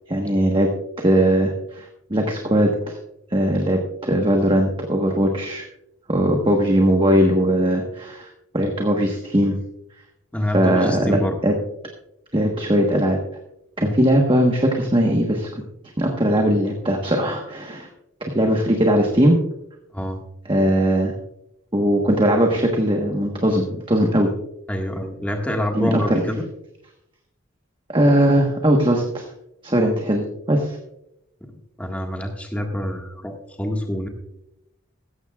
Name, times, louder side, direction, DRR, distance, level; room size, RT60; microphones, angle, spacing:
voice 1, 0.1-0.7 1.0-3.0 3.3-5.6 6.1-9.6 10.5-11.6 12.3-13.2 13.8-15.6 16.0-17.9 18.2-19.4 20.4-21.2 21.7-24.3 25.7-26.2 27.9-29.3 29.6-30.8, equal, 25° right, 2 dB, 1.2 m, -19 dB
voice 2, 10.3-11.3 13.8-14.0 19.9-20.2 24.7-26.4 31.8-34.1, equal, 5° left, 2 dB, 1.6 m, -26 dB
16.0 x 14.0 x 2.4 m, 0.81 s
head